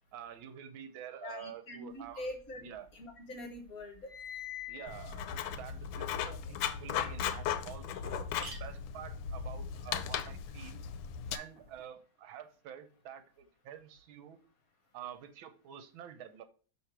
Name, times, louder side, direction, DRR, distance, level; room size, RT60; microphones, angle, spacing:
voice 1, 0.1-2.9 4.7-10.8 11.3-14.4 14.9-16.4, right 9 dB, 75° right, 9 dB, 1.5 m, -48 dB
voice 2, 1.2-2.6 2.9-4.1 4.8-4.9, left 1 dB, 50° left, 4 dB, 1.3 m, -44 dB
sound 1, 2.1-3.1 3.4-6.8, left 11 dB, 15° left, 1.9 m, -48 dB
Writing, 4.9-11.4, left 8 dB, 75° left, 1.3 m, -37 dB
sound 2, 6.8-6.9 7.4-7.5 7.7-7.8 8.1-11.9, right 3 dB, 45° right, 0.8 m, -55 dB
6.3 x 3.4 x 5.7 m, 0.38 s
omnidirectional pair, 2.2 m